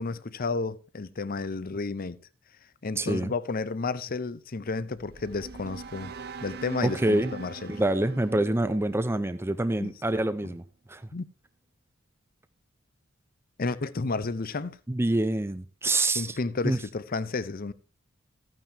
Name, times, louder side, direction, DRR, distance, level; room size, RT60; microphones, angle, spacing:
voice 1, 0.0-2.2 2.8-6.1 6.4-7.8 9.8-9.9 10.4-10.5 11.1-11.2 13.6-14.8 16.1-17.7, left 3 dB, 45° left, 0.7 m, -32 dB
voice 2, 3.0-3.3 6.8-7.3 7.7-10.6 10.9-11.0 14.9-16.4 16.6-16.8, right 1 dB, 10° right, 0.5 m, -26 dB
sound 1, 4.9-9.9, right 4 dB, 50° right, 0.7 m, -43 dB
14.0 x 9.1 x 2.8 m
head